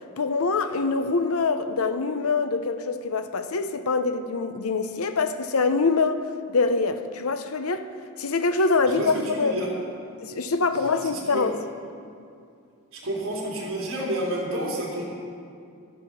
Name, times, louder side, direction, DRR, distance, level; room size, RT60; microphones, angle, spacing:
voice 1, 0.2-6.2 6.5-7.9 8.2-9.6 10.2-11.6, left 4 dB, 90° left, 9 dB, 0.7 m, -24 dB
voice 2, 8.8-9.7 11.0-11.5 12.9-15.2, right 1 dB, 75° right, -4 dB, 3.4 m, -30 dB
12.5 x 11.0 x 5.8 m, 2.4 s
head